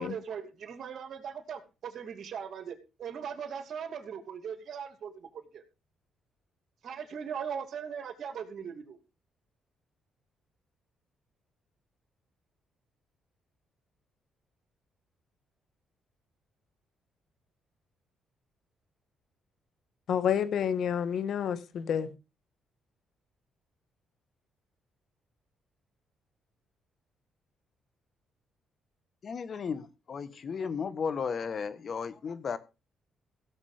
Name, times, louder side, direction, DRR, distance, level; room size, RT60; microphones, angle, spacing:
voice 1, 0.0-5.6 6.8-9.0, right 7 dB, 60° right, 2.8 m, -39 dB
voice 2, 20.1-22.1, left 8 dB, 65° left, 1.6 m, -29 dB
voice 3, 29.2-32.6, left 6 dB, 50° left, 1.5 m, -34 dB
16.0 x 7.3 x 5.1 m
cardioid pair, 90°, 0 cm